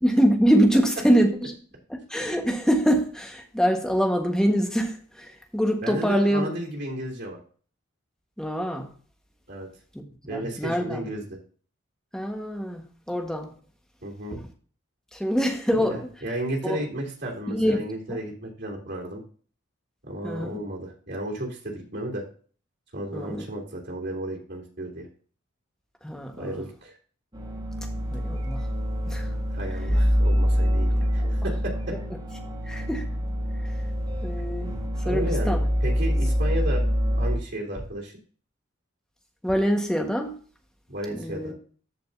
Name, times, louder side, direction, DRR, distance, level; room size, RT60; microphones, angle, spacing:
voice 1, 0.0-1.5 1.9-6.5 8.4-8.9 9.9-10.0 10.3-11.0 12.1-13.5 15.1-16.1 16.6-16.8 17.5-17.8 18.1-18.2 20.2-20.6 23.1-23.5 26.0-26.6 28.1-28.7 29.1-29.3 31.2-31.3 32.7-33.0 34.2-34.7 35.0-35.6 39.4-40.3 41.1-41.5, equal, 5° left, 1.3 m, -24 dB
voice 2, 5.8-7.4 9.5-9.7 10.3-11.2 14.0-14.4 15.7-19.2 20.0-22.2 22.9-25.1 26.3-27.0 29.5-32.0 35.0-36.9 37.2-38.2 40.9-41.5, right 1 dB, 55° right, 3.0 m, -33 dB
sound 1, 27.3-37.4, equal, 25° right, 1.9 m, -25 dB
14.0 x 5.3 x 2.7 m
head